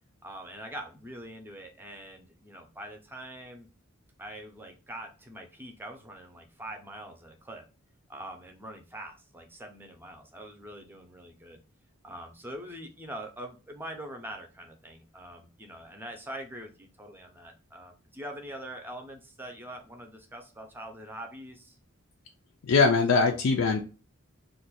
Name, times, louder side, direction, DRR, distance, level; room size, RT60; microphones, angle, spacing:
voice 1, 0.2-3.7 4.2-7.6 8.1-11.6 12.0-21.8, right 1 dB, 10° right, 3 dB, 0.5 m, -43 dB
voice 2, 22.6-23.8, left 4 dB, 85° left, 3 dB, 0.4 m, -22 dB
2.5 x 2.3 x 4.0 m, 0.34 s
head